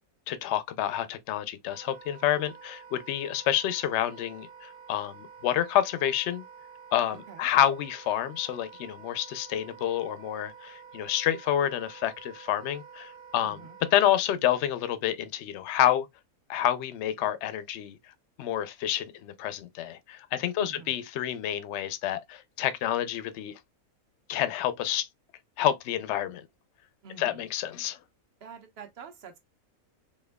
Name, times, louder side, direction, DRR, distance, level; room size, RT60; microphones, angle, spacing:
voice 1, 0.3-6.5 6.9-13.6 13.9-16.1 16.5-18.0 18.4-23.6 24.3-25.1 25.6-26.4 27.2-28.0, left 11 dB, 65° left, 0.7 m, -28 dB
Wind instrument woodwind instrument, 1.7-14.0, right 6 dB, 85° right, 1.3 m, -49 dB
voice 2, 7.1-7.5 13.4-13.8 20.6-20.9 27.0-27.5 28.4-29.4, right 6 dB, 50° right, 1.0 m, -46 dB
4.3 x 2.8 x 2.2 m
omnidirectional pair, 1.5 m